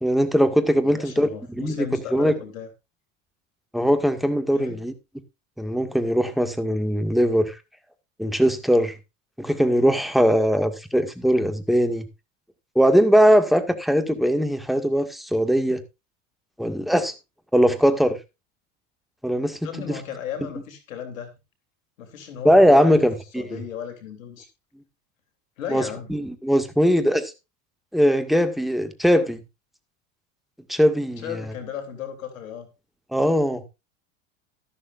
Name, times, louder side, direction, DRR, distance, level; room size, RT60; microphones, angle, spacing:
voice 1, 0.0-2.4 3.7-4.9 5.6-7.6 8.2-8.9 9.4-12.1 12.8-15.8 16.6-17.1 17.5-18.2 19.2-19.6 22.4-23.6 25.7-25.8 26.1-27.3 27.9-29.4 30.7-31.2 33.1-33.6, equal, ahead, 2.0 m, -20 dB
voice 2, 0.8-2.7 4.5-4.9 19.6-21.3 22.0-23.0 23.4-24.5 25.6-26.1 31.2-32.7, left 8 dB, 90° left, 3.4 m, -35 dB
13.0 x 12.0 x 2.6 m
supercardioid pair, 95°, 39 cm